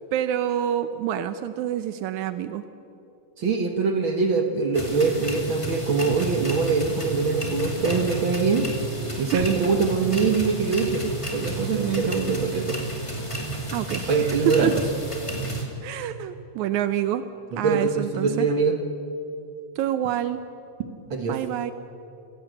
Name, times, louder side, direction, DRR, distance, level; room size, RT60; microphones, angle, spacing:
voice 1, 0.1-2.6 9.3-9.5 13.7-14.7 15.8-17.2 17.6-18.5 19.8-20.4 21.3-21.7, right 11 dB, 80° right, 11 dB, 2.1 m, -27 dB
voice 2, 3.4-8.7 9.2-12.8 14.1-14.8 17.5-18.8 21.1-21.4, right 4 dB, 50° right, 5 dB, 1.8 m, -23 dB
sound 1, 4.7-15.6, right 2 dB, 10° left, 2.2 m, -31 dB
29.0 x 15.5 x 7.8 m, 2.7 s
omnidirectional pair, 3.4 m